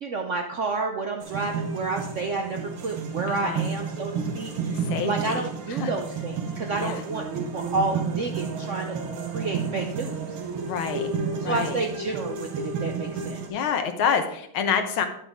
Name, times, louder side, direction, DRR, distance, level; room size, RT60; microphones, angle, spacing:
voice 1, 0.0-4.8 5.0-7.2 7.5-9.0 9.3-10.4 11.4-13.4, right 3 dB, 70° right, 3 dB, 0.7 m, -30 dB
sound 1, 1.2-13.5, right 5 dB, 90° right, 2.0 m, -31 dB
voice 2, 3.3-3.6 4.7-5.9 6.8-7.0 10.6-11.1 11.4-11.8 13.5-15.1, left 7 dB, 90° left, 7 dB, 1.9 m, -28 dB
10.0 x 7.8 x 3.6 m, 0.71 s
omnidirectional pair, 2.2 m